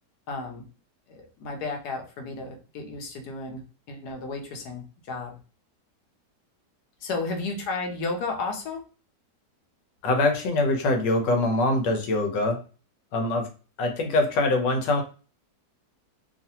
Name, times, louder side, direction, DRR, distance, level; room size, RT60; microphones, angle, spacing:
voice 1, 0.3-0.6 1.1-3.6 3.9-5.4 7.0-8.8, left 3 dB, 70° left, 3 dB, 1.2 m, -33 dB
voice 2, 10.0-12.6 13.1-13.5 13.8-15.0, left 2 dB, 90° left, 4 dB, 1.4 m, -23 dB
3.1 x 2.5 x 2.8 m, 0.36 s
omnidirectional pair, 1.9 m